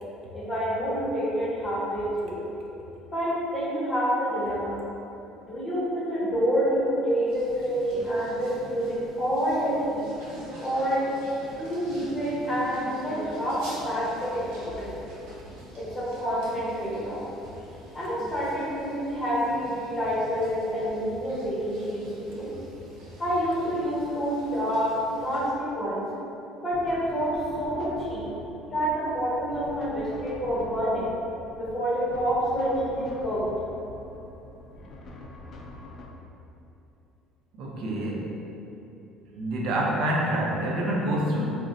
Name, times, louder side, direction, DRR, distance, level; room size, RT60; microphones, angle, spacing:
voice 1, 0.3-2.4 3.1-4.7 5.5-10.0 10.6-11.0 11.6-14.9 15.7-17.2 17.9-22.5 23.2-26.0 26.6-28.3 28.7-31.1 31.6-33.4, equal, 20° left, -8 dB, 0.9 m, -28 dB
sound 1, 7.3-25.5, equal, 75° right, 0.9 m, -45 dB
sound 2, 26.7-36.1, left 2 dB, 35° left, 0.3 m, -45 dB
voice 2, 37.5-38.3 39.3-41.4, right 1 dB, 60° right, -3 dB, 0.4 m, -27 dB
2.5 x 2.1 x 3.8 m, 2.9 s
cardioid pair, 140°, 0 cm